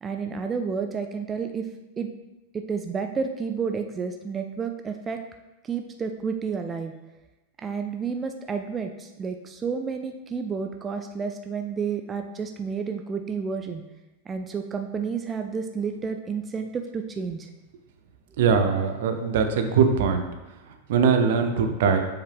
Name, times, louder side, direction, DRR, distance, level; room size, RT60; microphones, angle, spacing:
voice 1, 0.0-1.7 2.0-2.1 2.5-5.2 5.6-6.9 7.6-13.8 14.3-17.5, right 5 dB, 25° right, 5 dB, 0.5 m, -30 dB
voice 2, 18.4-20.2 20.9-22.0, right 6 dB, 65° right, 6 dB, 0.8 m, -21 dB
7.1 x 4.7 x 3.6 m, 1.1 s
hypercardioid pair, 100°, 0 cm